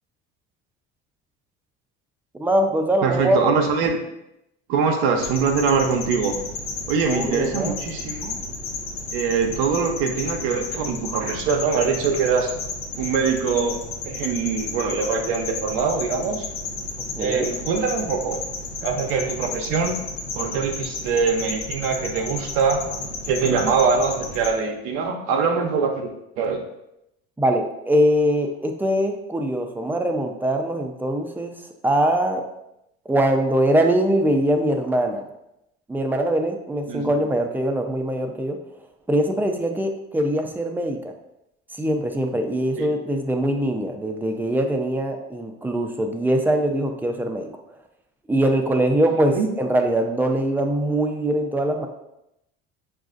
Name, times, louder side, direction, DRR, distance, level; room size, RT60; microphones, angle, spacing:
voice 1, 2.4-3.5 7.1-7.8 17.2-17.5 27.4-31.5 31.8-32.4 33.1-35.2 35.9-38.6 39.1-41.1 41.8-47.5 48.3-51.9, right 1 dB, 5° right, 3 dB, 0.5 m, -22 dB
voice 2, 3.0-4.0 4.7-6.3 6.9-8.4 9.1-12.6 13.0-13.8 14.0-16.5 17.2-18.4 18.8-20.0 20.3-26.6 36.9-37.1 42.8-42.9 49.3-49.5, right 5 dB, 75° right, 3 dB, 0.7 m, -23 dB
sound 1, 5.2-24.5, left 3 dB, 85° left, 0.7 m, -33 dB
6.0 x 2.5 x 2.4 m, 0.85 s
hypercardioid pair, 70°, 30 cm